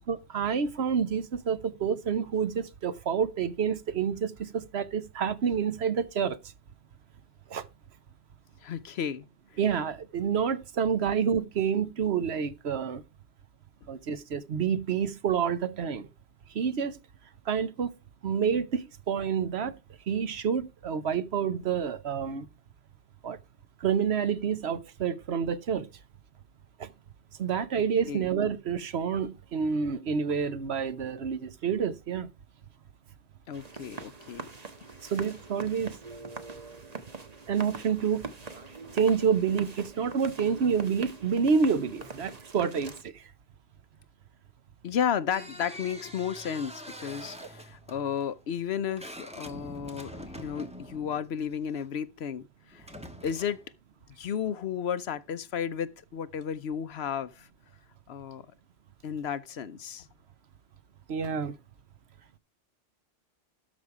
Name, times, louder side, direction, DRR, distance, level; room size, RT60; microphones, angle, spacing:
voice 1, 0.1-6.4 7.5-7.7 9.6-13.0 13.9-16.1 16.5-17.0 17.5-17.9 18.2-19.8 20.1-22.5 23.2-23.4 23.8-25.9 26.8-26.9 27.4-32.3 35.0-36.0 37.5-38.3 38.9-43.2 61.1-61.6, right 7 dB, 65° right, 1.1 m, -28 dB
voice 2, 8.6-9.3 28.1-28.3 33.5-34.4 35.0-35.1 44.8-52.9 53.2-53.6 54.2-57.5 58.1-58.5 59.0-60.1, left 8 dB, 65° left, 0.9 m, -33 dB
sound 1, 33.5-43.0, right 3 dB, 35° right, 1.3 m, -43 dB
sound 2, 45.3-51.9 52.7-53.7, equal, 5° right, 1.3 m, -45 dB
13.0 x 5.2 x 4.8 m
omnidirectional pair, 1.2 m